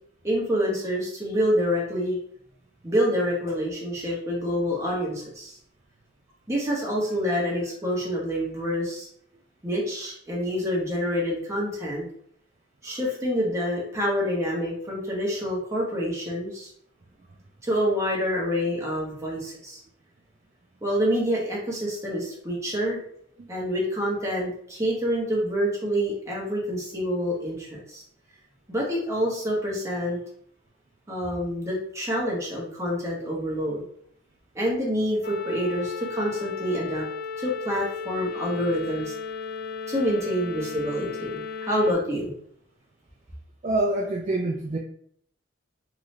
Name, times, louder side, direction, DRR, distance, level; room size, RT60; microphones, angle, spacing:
voice 1, 0.2-2.2 2.8-5.6 6.5-9.1 9.6-12.1 12.8-16.7 17.6-19.8 20.8-23.0 23.5-28.0 28.7-30.2 31.1-33.8 34.5-37.1 37.4-39.1 39.9-42.3, equal, 15° right, -4 dB, 1.1 m, -27 dB
sound 1, 35.2-41.9, left 5 dB, 50° left, 0.3 m, -35 dB
voice 2, 43.6-44.8, right 2 dB, 35° right, 1 dB, 0.3 m, -26 dB
3.8 x 3.1 x 3.2 m, 0.64 s
head